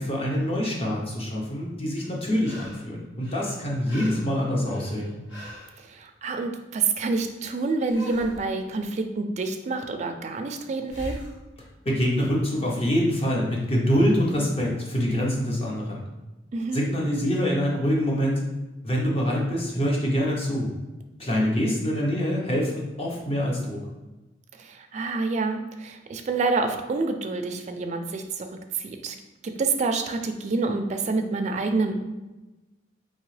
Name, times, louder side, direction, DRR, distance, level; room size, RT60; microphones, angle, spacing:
voice 1, 0.0-5.1 11.8-16.0 16.7-18.4 18.8-20.7 21.2-23.8, equal, 35° left, -2 dB, 0.7 m, -25 dB
sound 1, 2.0-2.9 3.2-5.8 7.8-8.5 10.9-11.4 14.3-14.4, left 1 dB, 80° left, 1.2 m, -41 dB
voice 2, 5.8-11.2 16.5-16.9 24.5-28.5 28.7-29.2 29.4-32.0, right 3 dB, 40° right, 5 dB, 0.3 m, -27 dB
3.7 x 2.8 x 3.2 m, 1.1 s
head